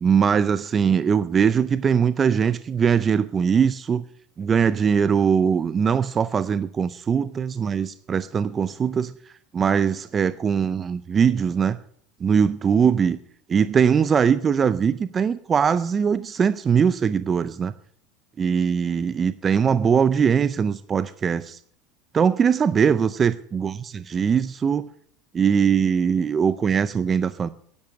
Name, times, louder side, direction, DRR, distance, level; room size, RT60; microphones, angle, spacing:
voice 1, 0.0-4.0 4.4-9.1 9.5-11.8 12.2-13.2 13.5-17.7 18.4-21.6 22.1-24.9 25.3-27.5, right 7 dB, 20° right, 14 dB, 0.5 m, -21 dB
11.5 x 10.5 x 7.8 m, 0.62 s
supercardioid pair, 145°, 0 cm